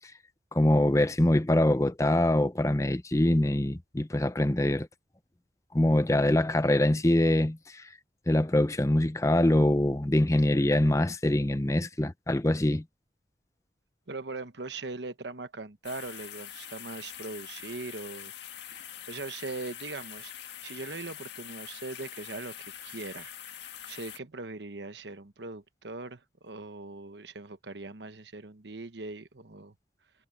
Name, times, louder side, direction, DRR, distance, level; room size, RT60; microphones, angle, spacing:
voice 1, 0.5-4.9 5.7-7.8 8.3-12.8, left 1 dB, 15° left, 0.6 m, -24 dB
voice 2, 14.1-18.3 18.8-22.6 22.8-23.3 23.9-29.7, right 3 dB, 75° right, 1.1 m, -40 dB
sound 1, 15.8-24.2, left 10 dB, 75° left, 1.7 m, -44 dB
head